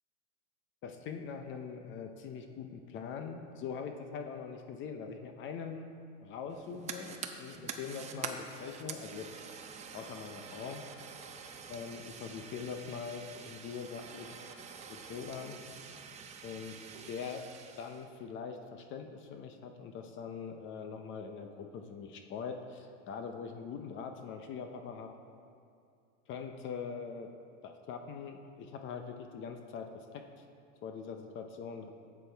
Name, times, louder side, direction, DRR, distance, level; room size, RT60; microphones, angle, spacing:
voice 1, 0.8-5.9 6.2-9.3 9.6-9.7 9.9-10.8 11.7-14.5 15.1-15.6 16.4-16.8 17.1-17.4 17.8-25.1 26.3-27.3 27.6-30.4 30.8-31.9, left 6 dB, 30° left, 5 dB, 0.6 m, -42 dB
Fire, 6.5-18.1, right 6 dB, 20° right, 0.5 m, -46 dB
12.5 x 8.3 x 3.4 m, 2.4 s
supercardioid pair, 140°, 38 cm